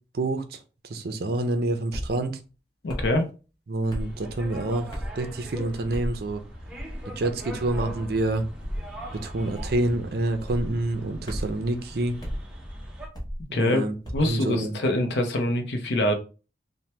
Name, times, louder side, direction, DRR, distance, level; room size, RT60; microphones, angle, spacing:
voice 1, 0.1-0.6 0.9-2.4 3.7-6.4 7.2-8.4 9.2-12.2 13.5-13.9 14.2-14.7, right 2 dB, 55° right, 0.5 m, -27 dB
sound 1, 1.9-2.1 2.9-3.2 3.9-4.1 4.9-5.2 5.9-6.2 6.7-7.0 7.6-7.9 8.6-8.9 9.5-9.9 10.4-10.7 11.3-11.6 12.2-12.4 13.1-13.4 14.0-14.3, equal, 20° left, 0.9 m, -33 dB
voice 2, 2.8-3.3 13.5-13.8 14.1-16.1, left 1 dB, 70° left, 0.6 m, -24 dB
sound 2, 4.0-13.1, equal, 5° right, 0.5 m, -40 dB
2.9 x 2.1 x 3.2 m
head